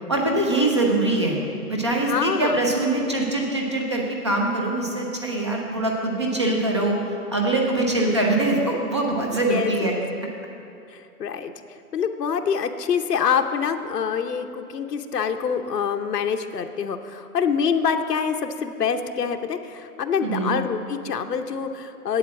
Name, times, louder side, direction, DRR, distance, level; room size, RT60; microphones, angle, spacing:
voice 1, 0.1-1.4 1.7-7.0 7.3-10.0 20.2-20.5, right 2 dB, 20° right, 0 dB, 0.6 m, -23 dB
voice 2, 2.0-2.6 7.9-8.2 9.4-10.0 10.9-11.5 11.9-22.2, left 7 dB, 90° left, 6 dB, 0.9 m, -25 dB
8.7 x 8.0 x 7.2 m, 2.8 s
hypercardioid pair, 165°, 46 cm